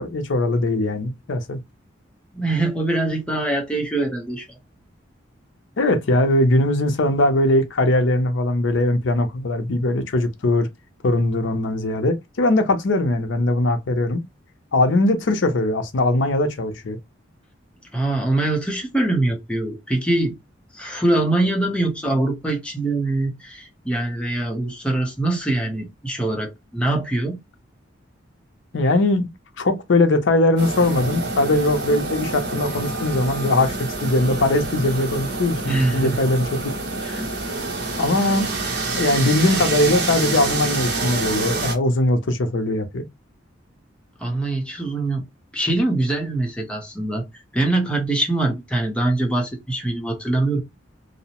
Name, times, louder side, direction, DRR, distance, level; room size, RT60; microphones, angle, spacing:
voice 1, 0.0-1.6 5.8-10.7 11.0-14.2 14.7-17.0 28.7-29.3 29.6-36.6 38.0-38.5 39.0-43.0, left 2 dB, 80° left, 0.5 m, -20 dB
voice 2, 2.3-4.5 17.9-20.4 20.7-27.4 35.6-36.2 37.0-37.3 44.2-45.2 45.5-47.2 47.5-50.6, right 2 dB, 5° left, 0.6 m, -23 dB
sound 1, 30.6-41.8, right 3 dB, 55° right, 0.8 m, -27 dB
2.7 x 2.0 x 2.9 m
head